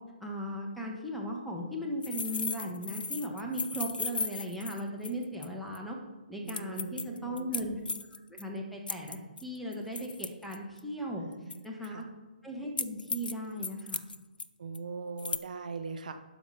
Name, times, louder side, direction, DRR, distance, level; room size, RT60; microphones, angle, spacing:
voice 1, 0.2-6.0 6.3-7.8 8.3-11.2 11.6-12.1 12.4-14.0, equal, ahead, -1 dB, 1.3 m, -37 dB
sound 1, 2.0-5.5 5.7-5.8 6.5-8.4 8.9-10.8 11.5-11.9 12.8-13.3 13.6-14.5 14.7-14.8 15.2-15.4, left 3 dB, 75° left, 0.5 m, -36 dB
voice 2, 6.4-7.4 11.2-12.1 14.6-16.2, right 4 dB, 55° right, 8 dB, 0.9 m, -41 dB
12.0 x 5.1 x 5.6 m, 1.2 s
figure-of-eight pair, 135°, 5 cm